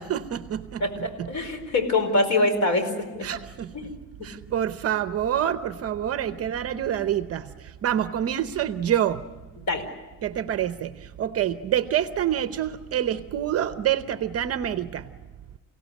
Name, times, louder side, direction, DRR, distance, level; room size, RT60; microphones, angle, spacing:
voice 1, 0.0-1.3 3.2-3.7 4.2-9.2 10.2-15.0, right 10 dB, 35° right, 11 dB, 0.8 m, -27 dB
voice 2, 0.8-3.3 3.7-3.9 9.6-9.9, left 2 dB, 45° left, 8 dB, 4.7 m, -24 dB
29.0 x 17.5 x 10.0 m, 1.3 s
cardioid pair, 155°, 41 cm